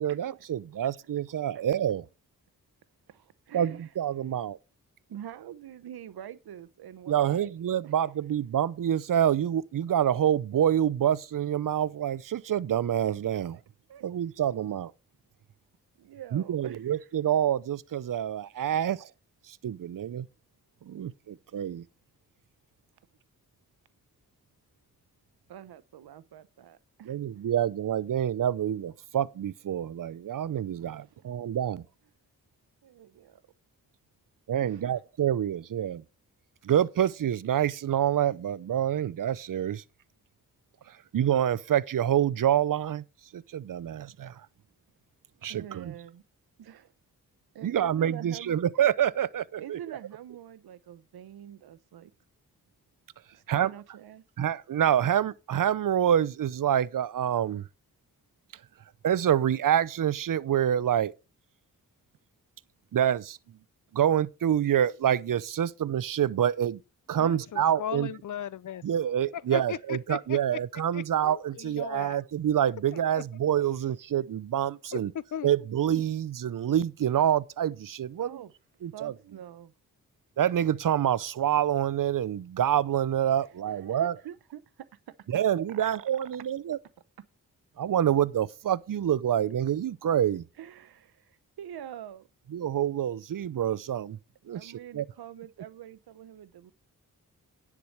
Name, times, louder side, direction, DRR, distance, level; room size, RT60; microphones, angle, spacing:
voice 1, 0.0-2.0 3.5-4.6 7.1-13.6 14.0-14.9 16.3-19.1 19.5-20.3 20.9-21.8 27.1-31.8 34.5-36.0 36.6-39.8 41.1-43.0 43.3-44.4 45.4-45.9 47.6-49.8 53.5-53.7 54.4-57.7 59.0-61.1 62.9-63.4 63.9-66.8 67.1-68.1 68.8-75.1 75.4-78.4 78.8-79.1 80.4-84.2 85.3-86.8 87.8-90.4 92.5-94.2 94.5-95.0, right 10 dB, 60° right, 0.6 m, -27 dB
voice 2, 3.1-3.9 5.1-7.5 7.8-7.9 13.5-13.6 13.9-14.0 16.0-17.1 25.5-27.2 30.8-31.2 32.8-33.4 34.6-35.0 45.5-46.2 46.6-46.9 47.5-48.6 49.6-52.1 53.3-54.2 78.2-78.5 78.8-79.7 83.4-84.9 85.3-85.4 85.7-85.9 90.6-92.3 94.5-96.7, right 10 dB, 90° right, 0.8 m, -45 dB
voice 3, 67.2-70.6 70.9-72.2 72.9-73.2 74.9-75.5, left 9 dB, 55° left, 0.5 m, -38 dB
10.0 x 4.8 x 6.5 m
cardioid pair, 50°, 37 cm